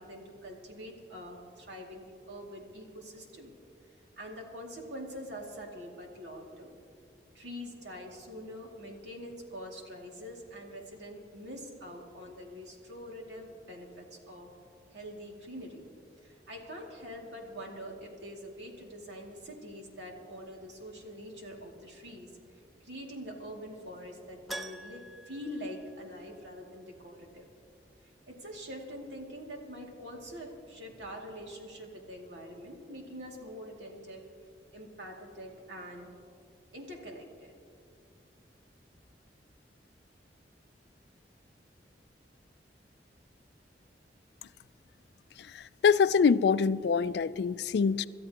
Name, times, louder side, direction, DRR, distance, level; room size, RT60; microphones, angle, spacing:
voice 1, 0.0-3.5 4.2-6.8 7.3-14.5 14.9-15.8 16.2-22.3 22.8-27.5 28.3-34.2 34.7-36.1 36.7-37.5, equal, 80° right, 2.3 m, -44 dB
Keyboard (musical), 24.5-26.5 26.8-26.9 29.6-29.7 29.9-30.0, right 1 dB, ahead, 0.5 m, -45 dB
voice 2, 45.4-48.1, left 6 dB, 70° left, 0.3 m, -25 dB
26.5 x 13.0 x 2.9 m
head